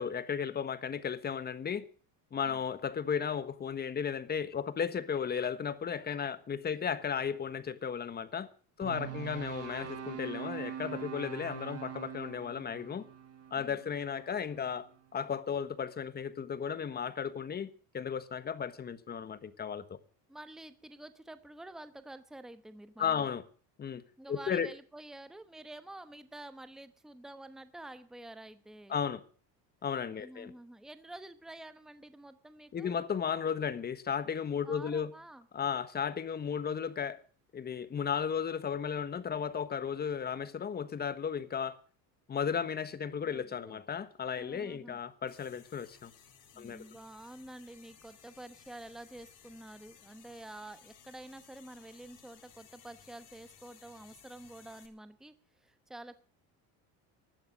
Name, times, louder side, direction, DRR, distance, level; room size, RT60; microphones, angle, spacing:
voice 1, 0.0-1.9 2.3-8.5 8.8-13.0 13.5-14.9 15.1-20.0 23.0-23.4 23.8-24.0 24.3-24.7 28.9-29.2 29.8-30.5 32.7-35.1 35.5-37.2 37.5-41.8 42.3-46.1 46.6-46.8, left 7 dB, 25° left, 1.3 m, -34 dB
sound 1, 8.8-15.0, right 8 dB, 40° right, 2.5 m, -43 dB
voice 2, 20.3-23.3 24.2-29.0 30.1-33.0 34.5-35.5 43.2-43.8 44.3-45.0 46.5-55.3 55.6-56.2, right 1 dB, ahead, 1.0 m, -49 dB
sound 2, 45.3-54.9, left 8 dB, 55° left, 4.3 m, -59 dB
16.0 x 12.0 x 6.5 m
cardioid pair, 150°, 38 cm